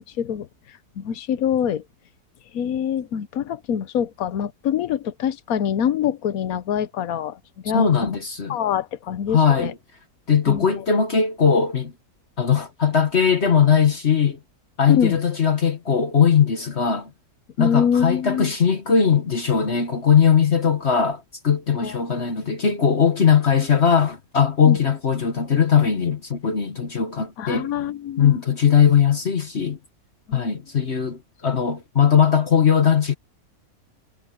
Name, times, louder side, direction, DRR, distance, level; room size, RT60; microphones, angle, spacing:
voice 1, 0.2-0.5 1.0-1.8 2.5-7.4 7.6-8.2 8.5-9.7 10.5-10.8 14.9-15.2 17.6-18.5 21.8-22.0 24.7-24.8 27.4-28.4 30.3-30.5, left 8 dB, 65° left, 1.3 m, -24 dB
voice 2, 7.7-8.6 9.3-9.7 10.3-11.9 12.4-14.4 14.8-17.1 17.6-27.7 28.2-29.8 30.3-33.1, left 7 dB, 45° left, 1.5 m, -19 dB
omnidirectional pair, 1.7 m